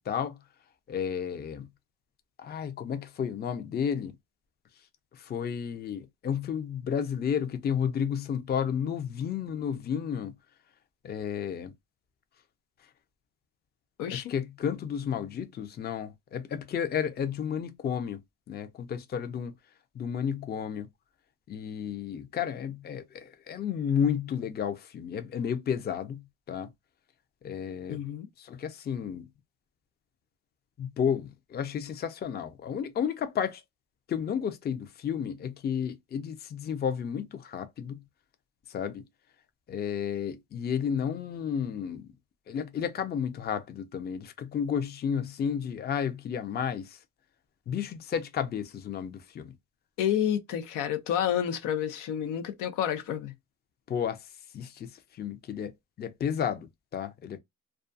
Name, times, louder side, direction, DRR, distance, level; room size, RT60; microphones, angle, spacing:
voice 1, 0.1-0.4 0.9-1.7 2.4-4.1 5.1-10.3 11.0-11.7 14.1-18.2 18.5-19.5 19.9-20.9 21.5-26.7 27.4-28.0 28.4-29.3 30.8-33.6 34.1-38.0 38.7-39.0 39.7-42.1 42.5-47.0 47.7-49.5 53.9-55.7 56.0-57.4, left 8 dB, 30° left, 0.5 m, -32 dB
voice 2, 27.9-28.3 50.0-53.3, left 10 dB, 90° left, 0.7 m, -29 dB
2.3 x 2.2 x 2.5 m
cardioid pair, 105°, 31 cm